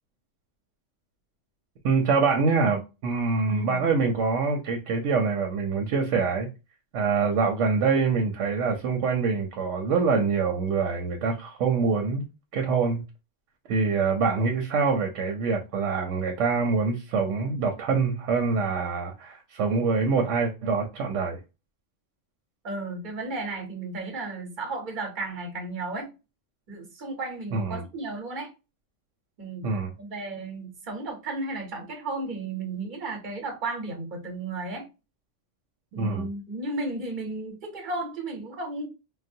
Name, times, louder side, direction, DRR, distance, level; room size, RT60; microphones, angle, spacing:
voice 1, 1.8-6.5 6.9-12.2 12.5-13.0 13.7-21.4 27.5-27.8 29.6-29.9 36.0-36.3, right 4 dB, 80° right, 1.0 m, -25 dB
voice 2, 3.5-3.9 22.6-26.1 26.7-28.5 29.4-34.9 35.9-38.9, right 2 dB, 45° right, 1.1 m, -34 dB
3.9 x 2.1 x 2.6 m
omnidirectional pair, 1.3 m